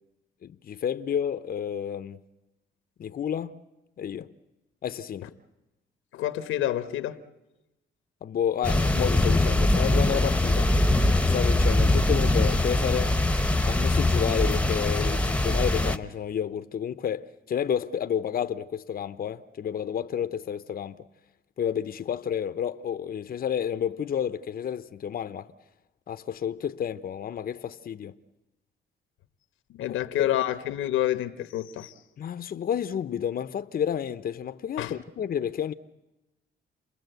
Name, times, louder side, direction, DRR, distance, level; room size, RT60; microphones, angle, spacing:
voice 1, 0.4-2.2 3.0-3.6 4.0-4.3 4.8-5.3 8.2-10.7 11.2-13.2 13.6-21.0 21.6-25.5 26.1-28.2 29.8-30.4 32.2-35.7, left 8 dB, 50° left, 0.8 m, -30 dB
voice 2, 6.1-7.2 29.7-31.9 34.8-34.9, left 13 dB, 90° left, 1.2 m, -28 dB
sound 1, 8.6-16.0, left 2 dB, 5° left, 1.0 m, -22 dB
29.0 x 20.5 x 8.0 m
cardioid pair, 90°, 20 cm